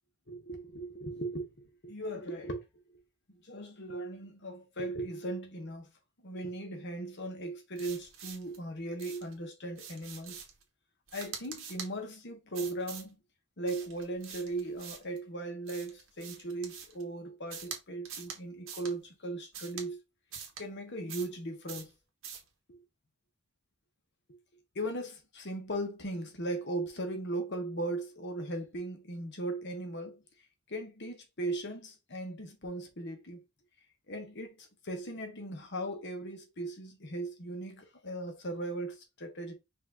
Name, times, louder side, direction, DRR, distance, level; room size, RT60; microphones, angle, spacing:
voice 1, 0.3-2.6 2.9-3.0 3.3-5.9 6.2-10.4 11.1-13.2 13.6-20.0 20.6-21.9 22.7-22.8 24.7-30.2 30.7-33.4 34.1-39.5, right 2 dB, 50° left, 1.2 m, -38 dB
sound 1, 7.8-8.6 9.0-9.3 9.8-10.6 11.1-11.9 12.5-13.1 13.7-15.2 15.7-17.0 17.5-17.8 18.1-18.4 18.7-18.9 19.5-19.9 20.3-20.6 21.1-21.4 21.7-21.9 22.2-22.5, right 7 dB, 65° right, 1.2 m, -45 dB
5.3 x 2.6 x 3.7 m
head